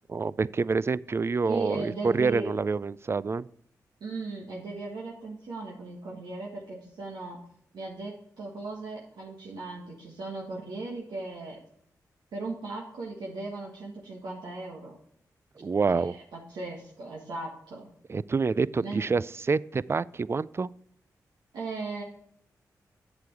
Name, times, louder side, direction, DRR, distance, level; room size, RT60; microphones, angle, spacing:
voice 1, 0.1-3.5 15.6-16.2 18.1-20.7, right 4 dB, 35° right, 20 dB, 0.3 m, -27 dB
voice 2, 1.4-2.5 4.0-7.4 7.7-11.6 12.3-15.0 15.9-17.9 18.8-19.0 21.5-22.0, right 3 dB, 80° right, -3 dB, 1.6 m, -37 dB
8.1 x 7.0 x 4.7 m, 0.68 s
supercardioid pair, 45°, 7 cm